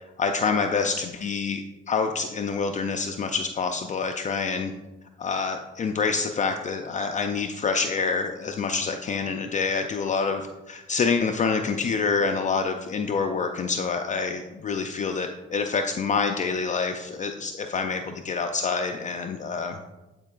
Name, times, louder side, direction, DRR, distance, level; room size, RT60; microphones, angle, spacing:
voice 1, 0.2-4.7 5.2-19.8, left 5 dB, 40° left, 5 dB, 0.4 m, -27 dB
9.5 x 4.5 x 2.4 m, 1.1 s
cardioid pair, 90°, 20 cm